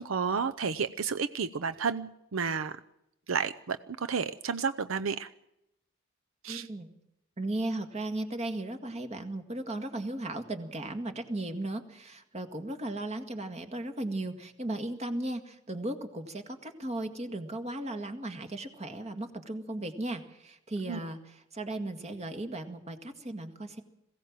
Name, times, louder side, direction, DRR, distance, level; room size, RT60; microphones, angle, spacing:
voice 1, 0.0-2.8 3.3-5.3 6.4-6.7 20.9-21.0, right 6 dB, 80° right, 11 dB, 0.7 m, -31 dB
voice 2, 6.5-6.9 7.4-23.8, right 1 dB, 35° right, 7 dB, 1.9 m, -36 dB
21.5 x 16.5 x 7.4 m, 0.84 s
head